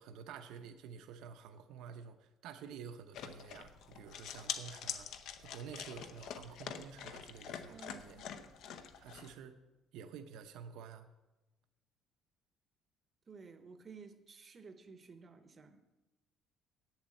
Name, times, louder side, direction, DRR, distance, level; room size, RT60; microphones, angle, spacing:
voice 1, 0.0-8.2 9.0-9.6 9.9-11.1, right 7 dB, 65° right, 7 dB, 0.8 m, -50 dB
sound 1, 3.1-9.3, left 8 dB, 55° left, 0.8 m, -45 dB
voice 2, 7.7-8.3 13.3-15.8, right 5 dB, 25° right, 9 dB, 0.8 m, -54 dB
8.8 x 7.3 x 7.7 m, 1.0 s
cardioid pair, 175°, 0 cm